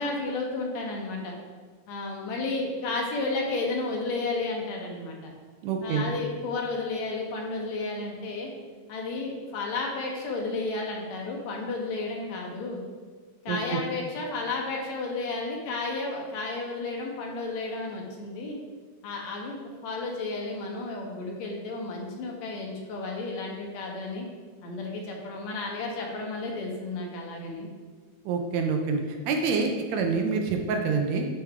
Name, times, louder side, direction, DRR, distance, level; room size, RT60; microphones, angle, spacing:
voice 1, 0.0-1.3 1.9-5.3 5.8-8.5 8.9-12.8 13.5-18.6 19.0-24.3 24.6-27.7, left 3 dB, 75° left, 0 dB, 2.2 m, -32 dB
voice 2, 5.6-6.1 13.5-13.8 28.3-31.3, right 5 dB, 75° right, 3 dB, 1.9 m, -27 dB
10.0 x 3.4 x 3.6 m, 1.5 s
omnidirectional pair, 3.3 m